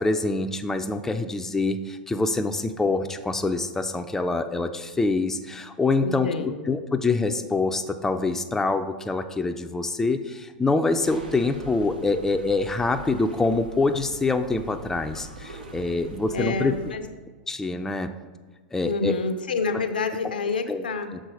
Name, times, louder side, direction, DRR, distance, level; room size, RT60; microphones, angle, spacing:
voice 1, 0.0-16.7 17.5-18.1 18.7-19.2 20.7-20.8 21.1-21.2, left 3 dB, 10° left, 7 dB, 0.4 m, -25 dB
voice 2, 6.0-6.6 16.3-17.1 18.8-21.1, left 4 dB, 85° left, 8 dB, 0.6 m, -28 dB
sound 1, 11.0-17.0, right 3 dB, 85° right, 0.9 m, -43 dB
6.3 x 3.9 x 5.2 m, 1.4 s
hypercardioid pair, 105°, 5 cm